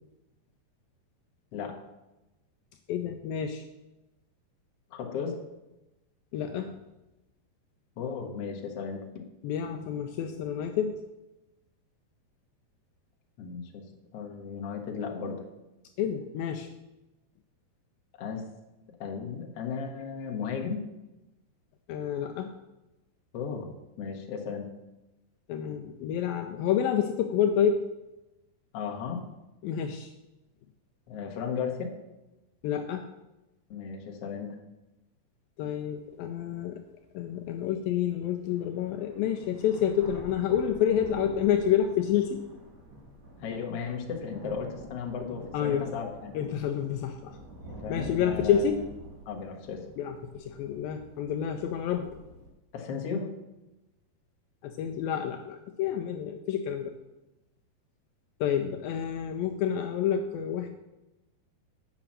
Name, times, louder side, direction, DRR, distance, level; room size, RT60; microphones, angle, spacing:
voice 1, 2.9-3.6 6.3-6.8 9.4-11.0 16.0-16.7 21.9-22.5 25.5-27.8 29.6-30.1 32.6-33.1 35.6-36.8 37.1-42.4 45.5-45.9 46.3-47.4 47.9-48.8 50.0-52.1 54.6-56.9 58.4-60.7, left 9 dB, 90° left, 4 dB, 2.0 m, -28 dB
voice 2, 4.9-5.4 8.0-9.3 13.4-13.8 14.1-15.4 18.2-18.4 19.0-20.8 23.3-23.7 24.0-24.7 28.7-29.2 31.1-32.0 33.7-34.6 43.4-46.3 47.7-48.8 49.2-49.8 52.7-53.3, left 6 dB, 60° left, 2 dB, 1.6 m, -35 dB
sound 1, 36.0-36.1 36.7-36.8 38.1-38.2 38.5-52.5, right 1 dB, 45° right, 1.7 m, -47 dB
9.0 x 5.9 x 7.3 m, 1.0 s
omnidirectional pair, 4.8 m